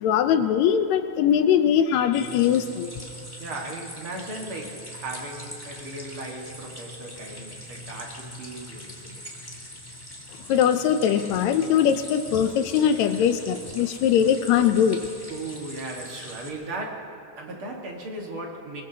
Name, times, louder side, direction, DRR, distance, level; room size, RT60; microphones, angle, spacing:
voice 1, 0.0-2.9 10.5-15.1, left 8 dB, 75° left, 9 dB, 1.7 m, -21 dB
sound 1, 2.1-16.5, equal, 10° left, 1.1 m, -42 dB
voice 2, 3.4-9.2 15.3-18.8, right 2 dB, 50° right, 0 dB, 2.2 m, -37 dB
22.0 x 20.5 x 2.8 m, 2.5 s
omnidirectional pair, 3.6 m